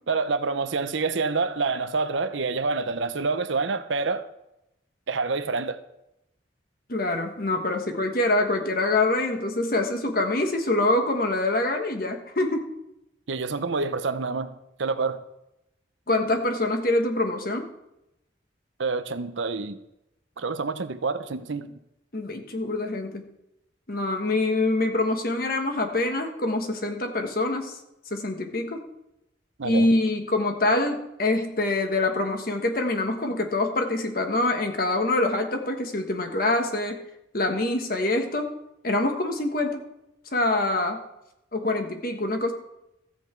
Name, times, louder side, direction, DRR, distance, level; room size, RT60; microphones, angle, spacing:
voice 1, 0.1-4.3 5.1-5.8 13.3-15.2 18.8-19.8 20.4-21.8 29.6-29.9, right 4 dB, 80° right, 0.7 m, -27 dB
voice 2, 6.9-12.7 16.1-17.7 22.1-23.2 23.9-27.7 28.1-28.8 29.6-37.0 37.3-38.5 38.8-39.8 40.3-41.0 41.5-42.5, left 2 dB, 50° left, 1.3 m, -25 dB
14.0 x 8.1 x 4.5 m
head